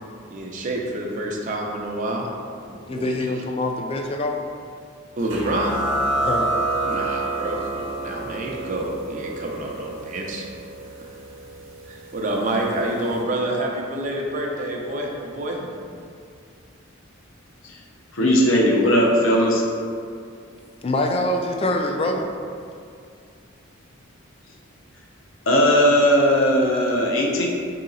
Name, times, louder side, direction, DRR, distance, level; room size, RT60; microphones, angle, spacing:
voice 1, 0.3-2.3 2.7-3.1 5.2-5.8 6.8-10.5 11.0-11.1 11.9-15.6, right 1 dB, 40° right, -1 dB, 0.5 m, -28 dB
voice 2, 2.9-4.4 6.2-6.5 20.8-22.3, left 1 dB, 25° left, 3 dB, 0.3 m, -24 dB
sound 1, 5.3-12.5, right 2 dB, 65° right, 0.8 m, -28 dB
voice 3, 18.1-19.6 25.5-27.5, equal, 70° left, -1 dB, 0.7 m, -18 dB
4.8 x 2.8 x 3.8 m, 2.3 s
head